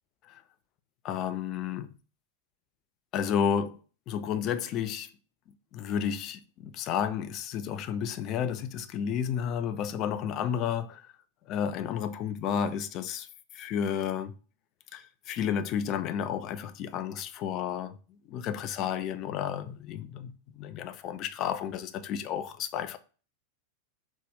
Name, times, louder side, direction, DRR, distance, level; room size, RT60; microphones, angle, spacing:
voice 1, 1.0-1.9 3.1-3.8 4.1-5.1 5.7-11.0 11.5-13.3 13.5-14.3 14.9-18.0 18.3-23.0, left 8 dB, 35° left, 0.4 m, -31 dB
4.1 x 2.1 x 3.3 m
figure-of-eight pair, 90°, 0 cm